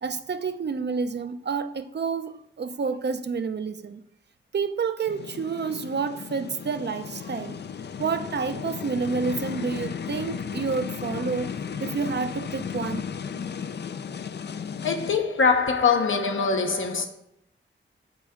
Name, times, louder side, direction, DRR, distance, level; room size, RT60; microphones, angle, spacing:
voice 1, 0.0-4.0 4.5-7.6 8.0-11.5 11.8-13.1, right 5 dB, 55° right, 0.6 m, -29 dB
sound 1, 5.1-15.2, left 7 dB, 55° left, 0.4 m, -35 dB
voice 2, 14.8-17.1, left 5 dB, 75° left, 1.0 m, -23 dB
8.2 x 4.3 x 3.7 m
cardioid pair, 55°, 21 cm